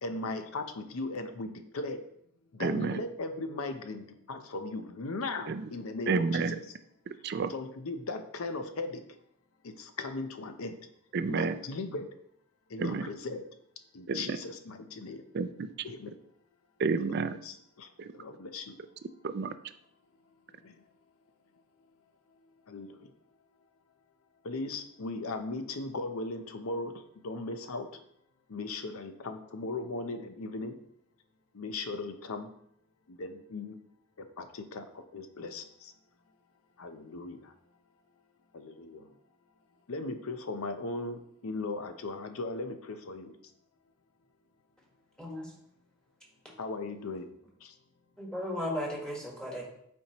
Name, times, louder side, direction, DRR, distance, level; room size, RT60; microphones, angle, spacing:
voice 1, 0.0-2.0 2.5-6.6 7.5-9.0 9.6-10.8 11.3-12.1 12.7-13.4 13.9-15.2 15.8-16.1 17.0-17.9 18.1-18.8 20.6-20.7 22.7-23.1 24.4-26.9 27.2-27.9 28.5-30.8 31.5-32.5 33.1-33.8 34.2-35.9 36.8-37.5 38.5-39.1 39.9-43.3 46.6-47.3 47.6-47.7, left 3 dB, 80° left, 8 dB, 0.6 m, -38 dB
voice 2, 2.6-3.0 5.5-5.7 6.1-6.6 7.1-7.5 11.1-11.6 12.8-13.1 14.1-14.4 15.3-15.7 16.8-17.4 18.0-18.1 19.2-19.5, right 4 dB, 50° right, 11 dB, 0.4 m, -30 dB
voice 3, 45.2-45.5 48.2-49.7, left 1 dB, 5° left, -3 dB, 1.4 m, -35 dB
8.3 x 4.4 x 2.9 m, 0.71 s
head